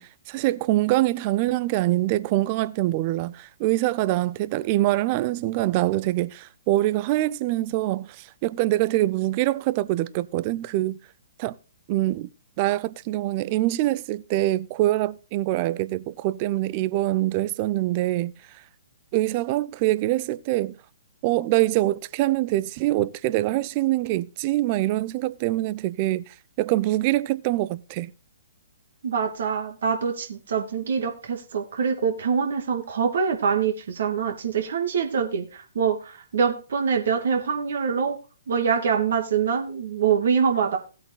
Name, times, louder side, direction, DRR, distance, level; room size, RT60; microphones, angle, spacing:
voice 1, 0.0-11.0 11.4-11.5 11.9-12.3 12.6-18.3 19.1-20.8 21.2-28.1, right 16 dB, 35° right, 0.5 m, -24 dB
voice 2, 29.0-38.2 38.5-40.8, right 6 dB, 60° right, 2.6 m, -24 dB
18.0 x 8.4 x 2.2 m
figure-of-eight pair, 125°, 0 cm